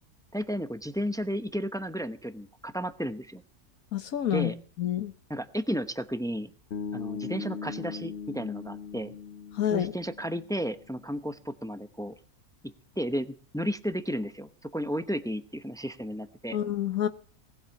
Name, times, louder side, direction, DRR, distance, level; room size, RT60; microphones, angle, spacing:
voice 1, 0.3-3.4 4.3-4.6 5.3-6.5 6.9-9.2 9.7-12.1 13.0-16.6, equal, 5° left, 11 dB, 0.4 m, -33 dB
voice 2, 3.9-4.5 4.8-5.1 9.6-9.9 16.5-17.1, left 10 dB, 65° left, 10 dB, 1.4 m, -28 dB
Bass guitar, 6.7-10.8, left 6 dB, 50° left, 1.1 m, -39 dB
19.0 x 8.1 x 7.0 m, 0.43 s
omnidirectional pair, 1.6 m